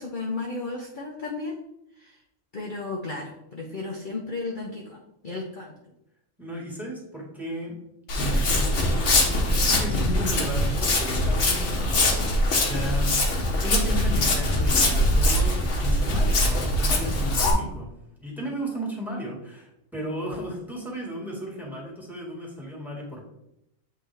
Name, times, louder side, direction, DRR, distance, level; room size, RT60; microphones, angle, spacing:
voice 1, 0.0-1.5 2.0-2.2 2.5-5.8 13.0-13.6, left 3 dB, 45° left, -1 dB, 0.8 m, -34 dB
voice 2, 6.4-7.8 8.1-12.3 12.5-17.9 18.2-23.2, equal, ahead, -4 dB, 1.8 m, -34 dB
Walk footsteps, 8.1-17.5, left 1 dB, 65° left, 1.4 m, -22 dB
7.8 x 3.7 x 3.4 m, 0.82 s
omnidirectional pair, 1.4 m